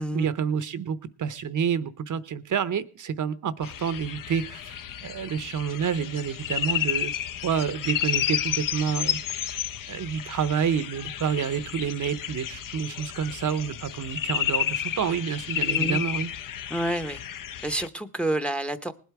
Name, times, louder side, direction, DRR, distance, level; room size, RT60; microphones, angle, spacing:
voice 1, 0.1-7.1 7.4-9.6 9.9-16.3, right 7 dB, 50° right, 0.7 m, -29 dB
sound 1, 3.6-17.9, left 10 dB, 55° left, 0.6 m, -31 dB
voice 2, 15.6-16.0 16.7-17.2 17.6-18.9, right 1 dB, 5° left, 0.7 m, -29 dB
19.0 x 8.1 x 4.7 m
cardioid pair, 90°, 39 cm